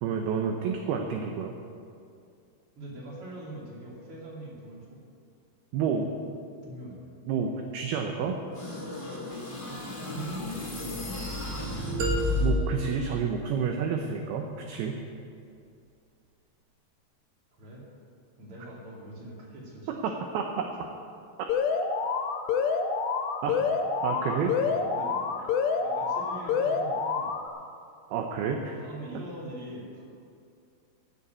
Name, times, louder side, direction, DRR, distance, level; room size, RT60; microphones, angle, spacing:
voice 1, 0.0-1.5 5.7-6.1 7.3-8.4 12.4-15.0 19.9-20.7 23.4-23.6 24.0-24.5 28.1-28.8, right 6 dB, 75° right, 3 dB, 2.5 m, -29 dB
voice 2, 2.8-5.0 6.6-7.0 10.0-11.6 17.5-17.8 18.4-19.9 23.5-23.7 24.2-25.2 25.8-27.3 28.8-30.0, right 1 dB, 35° right, -3 dB, 3.0 m, -42 dB
sound 1, 8.5-12.9, left 2 dB, 5° left, 2.2 m, -32 dB
sound 2, 12.0-14.0, right 3 dB, 55° right, 2.3 m, -36 dB
Alarm, 21.5-27.5, left 5 dB, 80° left, 3.0 m, -28 dB
14.5 x 7.1 x 8.7 m, 2.4 s
omnidirectional pair, 5.2 m